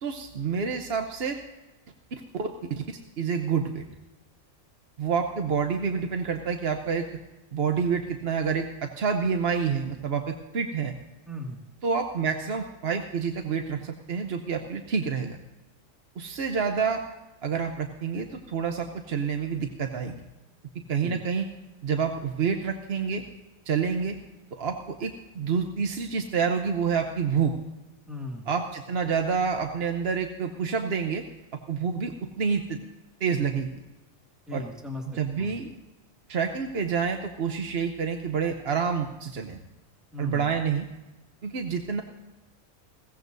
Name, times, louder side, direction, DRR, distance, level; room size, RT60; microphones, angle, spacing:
voice 1, 0.0-1.4 2.4-2.5 3.2-3.8 5.0-7.1 7.5-10.9 11.8-15.4 16.2-17.0 17.4-20.2 20.9-21.5 21.8-23.2 23.7-24.2 24.5-27.5 28.5-31.2 31.7-32.8 33.2-33.7 34.5-34.6 35.2-35.7 36.3-39.6 40.2-40.9 41.4-42.0, right 6 dB, 55° right, 5 dB, 1.0 m, -28 dB
voice 2, 11.3-11.6 21.0-21.2 28.1-28.5 34.5-35.0 35.4-35.6 40.1-40.5, left 2 dB, ahead, -1 dB, 2.0 m, -37 dB
20.5 x 17.0 x 2.7 m, 1.1 s
omnidirectional pair, 1.4 m